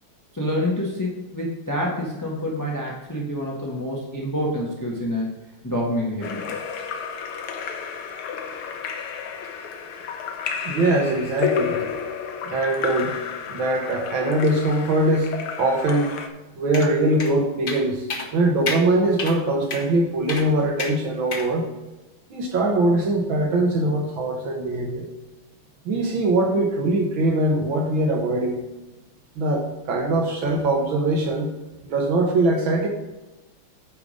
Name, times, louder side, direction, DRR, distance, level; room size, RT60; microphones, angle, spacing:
voice 1, 0.3-5.3 5.6-6.6, left 1 dB, 10° left, -3 dB, 1.2 m, -27 dB
Splash splatter / Drip / Trickle dribble, 6.2-16.3, left 7 dB, 85° left, 1.7 m, -31 dB
voice 2, 10.6-11.8 12.4-13.1 13.5-16.1 16.6-18.1 18.3-21.6 22.3-25.1 25.9-28.6 29.4-31.5 31.8-32.9, right 2 dB, 70° right, 2 dB, 1.9 m, -22 dB
sound 1, 16.7-16.9 17.2-17.3 17.7-17.8 18.1-18.3 18.7-18.8 19.2-19.4 19.7-19.8 20.3-20.5 20.8-20.9 21.3-21.5, left 3 dB, 40° left, 0.8 m, -29 dB
9.4 x 4.9 x 5.1 m, 1.1 s
omnidirectional pair, 2.3 m